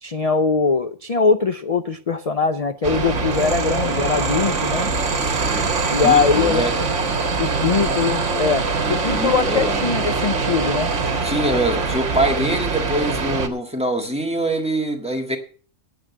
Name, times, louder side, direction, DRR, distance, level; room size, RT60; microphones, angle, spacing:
voice 1, 0.0-4.9 5.9-6.7 7.4-10.9, left 5 dB, 45° left, 9 dB, 0.5 m, -21 dB
sound 1, 2.8-13.5, right 4 dB, 65° right, 1.8 m, -23 dB
voice 2, 5.2-5.7 6.0-6.7 8.8-9.8 11.2-15.4, right 1 dB, 5° right, 3 dB, 1.7 m, -24 dB
9.1 x 8.7 x 7.2 m, 0.42 s
omnidirectional pair, 1.4 m